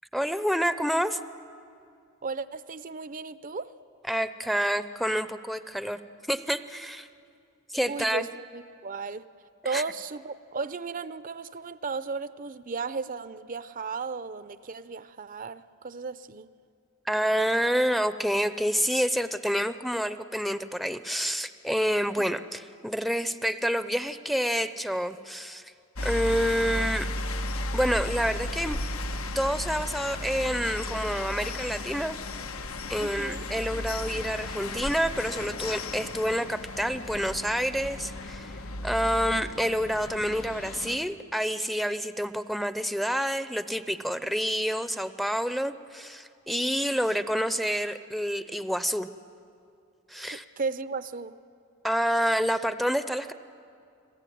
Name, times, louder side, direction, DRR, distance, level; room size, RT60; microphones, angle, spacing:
voice 1, 0.1-1.2 4.1-6.0 6.3-7.1 7.7-8.3 9.7-9.8 17.1-25.7 26.0-27.1 27.7-28.8 29.3-32.2 32.9-49.1 50.1-50.4 51.8-53.3, equal, ahead, 11 dB, 0.6 m, -28 dB
voice 2, 2.2-3.7 7.8-9.3 9.6-16.5 22.2-22.3 33.0-33.4 50.3-51.3, right 4 dB, 40° right, 14 dB, 0.6 m, -35 dB
sound 1, 26.0-41.0, left 2 dB, 85° left, 1.3 m, -35 dB
30.0 x 20.5 x 9.3 m, 2.4 s
head